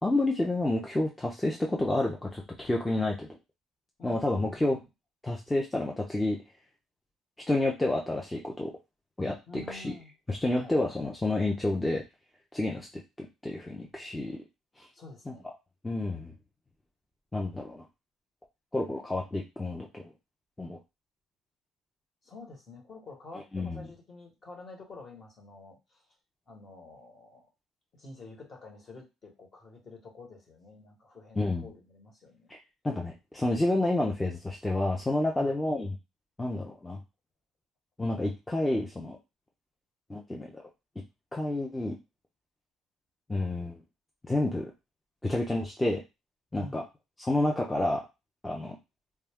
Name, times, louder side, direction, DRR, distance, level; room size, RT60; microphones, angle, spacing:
voice 1, 0.0-3.4 4.0-4.8 5.2-6.4 7.5-8.7 9.2-9.9 10.3-12.0 12.5-14.4 14.8-14.9 15.3-15.4 15.8-16.3 17.3-17.8 18.7-20.0 20.6-20.8 23.5-23.8 31.4-31.7 32.5-32.6 32.8-35.9 36.4-37.0 38.0-39.2 40.1-40.6 41.3-41.9 43.3-43.8 44.3-44.7 45.2-46.0 46.5-46.8 47.2-48.0 48.4-48.8, left 2 dB, 10° left, -1 dB, 0.5 m, -29 dB
voice 2, 4.0-4.8 9.5-10.1 10.5-10.7 14.9-15.5 22.2-26.0 26.5-27.4 27.9-32.5 35.3-35.6 46.5-46.8, left 2 dB, 40° left, 1 dB, 1.2 m, -48 dB
2.2 x 2.2 x 3.5 m, 0.25 s
supercardioid pair, 90°, 0 cm